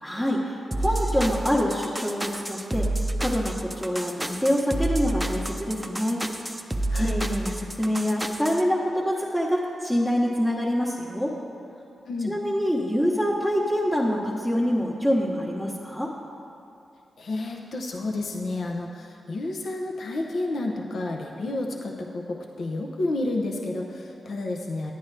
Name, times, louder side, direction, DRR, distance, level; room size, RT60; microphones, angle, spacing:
voice 1, 0.0-2.9 3.2-6.2 6.9-11.3 12.2-16.1, equal, 5° left, -6 dB, 1.0 m, -25 dB
sound 1, 0.7-8.6, right 1 dB, 15° right, 0.6 m, -29 dB
voice 2, 17.2-24.9, left 2 dB, 65° left, 1 dB, 0.7 m, -30 dB
10.5 x 9.4 x 3.3 m, 2.6 s
cardioid pair, 70°, 0 cm